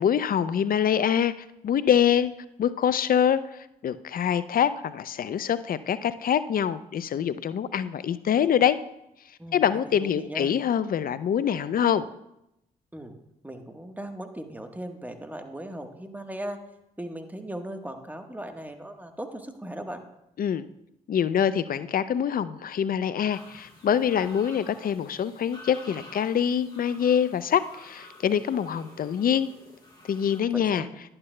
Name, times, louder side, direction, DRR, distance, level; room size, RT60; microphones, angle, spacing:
voice 1, 0.0-1.3 1.6-2.3 2.6-8.8 9.5-12.1 20.4-20.7 21.1-29.5 30.1-30.9, left 8 dB, 55° left, 15 dB, 0.5 m, -25 dB
voice 2, 9.4-10.5 12.9-13.2 13.4-16.6 17.0-20.0 30.5-30.9, right 1 dB, 10° right, 5 dB, 1.2 m, -38 dB
sound 1, 23.3-30.4, left 1 dB, 25° left, 2.7 m, -50 dB
11.0 x 8.7 x 2.2 m, 0.85 s
hypercardioid pair, 45°, 18 cm